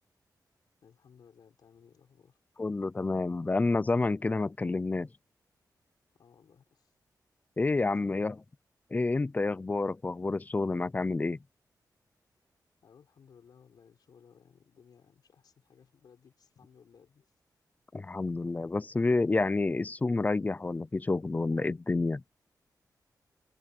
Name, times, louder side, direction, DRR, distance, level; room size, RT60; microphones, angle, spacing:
voice 1, 0.8-2.4 6.2-6.9 7.7-8.4 12.8-17.3, left 7 dB, 75° left, 4.5 m, -59 dB
voice 2, 2.6-5.1 7.6-8.3 8.9-11.4 17.9-22.2, left 3 dB, 20° left, 0.6 m, -29 dB
wide cardioid pair, 125°, 7 cm